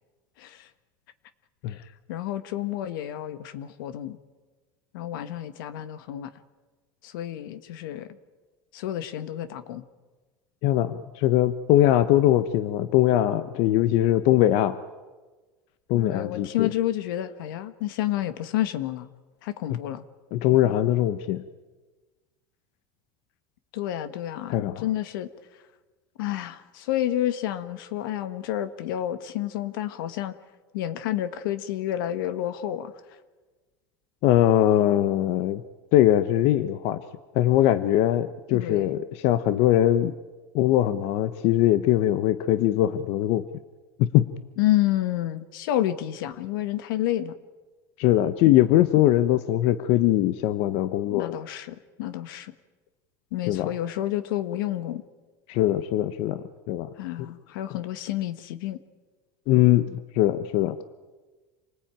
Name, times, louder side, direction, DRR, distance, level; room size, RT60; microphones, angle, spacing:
voice 1, 0.4-0.7 1.7-1.8 2.1-4.2 4.9-6.3 7.0-8.1 8.7-9.8 15.9-19.1 19.4-20.0 23.7-25.3 26.2-30.3 30.7-32.9 38.5-39.0 44.6-47.3 51.1-52.5 53.3-55.0 57.0-58.8, left 13 dB, 85° left, 12 dB, 1.5 m, -29 dB
voice 2, 10.6-14.8 15.9-16.7 20.3-21.4 24.5-24.8 34.2-35.6 35.9-37.0 37.3-40.1 40.5-43.4 44.0-44.3 48.0-51.3 53.5-53.7 55.5-56.9 59.5-60.8, left 13 dB, 65° left, 12 dB, 1.0 m, -21 dB
27.5 x 19.5 x 9.0 m, 1.3 s
supercardioid pair, 125°, 11 cm